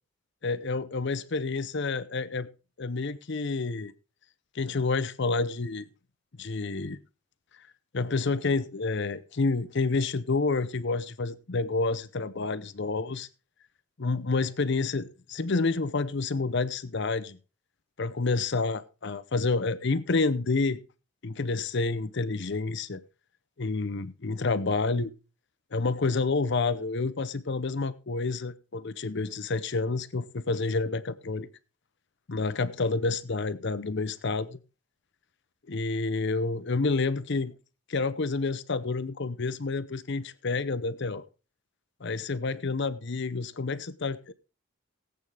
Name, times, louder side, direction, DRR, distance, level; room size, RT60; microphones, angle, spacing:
voice 1, 0.4-2.5 2.8-3.9 4.5-5.9 6.4-7.0 7.9-13.3 14.0-17.4 18.0-20.8 21.2-23.0 23.6-25.1 25.7-31.5 32.3-34.6 35.7-37.5 37.9-41.2 42.0-44.3, left 3 dB, 50° left, 0.7 m, -29 dB
18.0 x 8.8 x 3.4 m
head